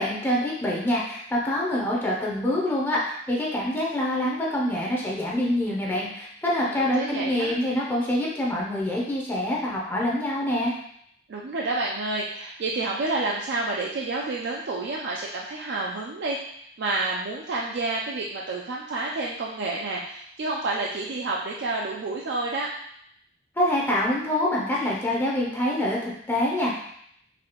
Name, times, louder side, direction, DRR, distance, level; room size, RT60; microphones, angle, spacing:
voice 1, 0.0-10.7 23.6-26.7, left 1 dB, 10° left, -4 dB, 0.5 m, -25 dB
voice 2, 7.0-7.5 11.3-22.7, right 2 dB, 65° right, -3 dB, 0.4 m, -29 dB
4.0 x 2.8 x 2.9 m, 0.71 s
head